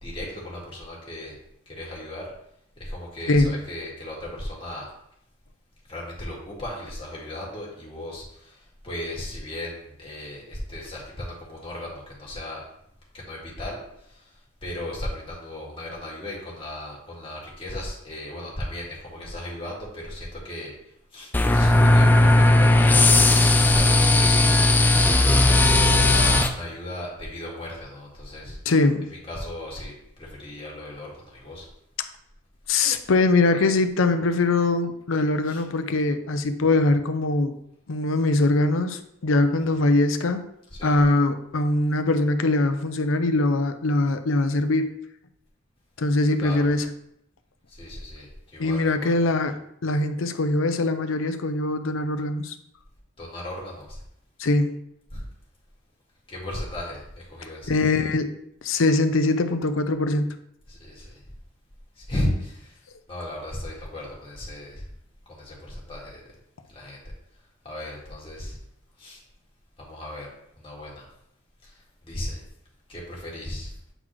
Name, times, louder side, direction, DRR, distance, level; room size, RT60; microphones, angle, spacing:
voice 1, 0.0-1.4 1.7-2.3 2.8-4.9 5.9-8.6 8.8-12.6 13.1-13.8 14.1-14.2 14.6-20.7 21.1-23.0 23.6-24.6 25.0-28.6 29.3-31.7 35.5-35.6 40.8-41.0 46.4-46.7 47.7-48.3 48.5-49.1 53.2-54.0 55.1-55.2 56.3-57.8 60.7-61.1 62.0-62.7 63.1-64.8 65.3-66.2 66.7-67.0 67.6-68.6 69.0-69.2 69.8-70.3 70.6-71.1 71.6-71.7 72.0-72.4 72.9-73.7, left 1 dB, 25° left, -5 dB, 1.9 m, -35 dB
voice 2, 3.3-3.6 28.7-29.1 32.7-37.5 37.9-40.5 40.8-44.9 46.0-46.9 48.6-49.5 49.8-52.5 54.4-54.7 57.7-58.3 58.6-60.4, left 2 dB, 75° left, 9 dB, 0.6 m, -22 dB
sound 1, 21.3-26.5, left 2 dB, 10° left, 0.3 m, -17 dB
8.9 x 4.0 x 3.1 m, 0.76 s
head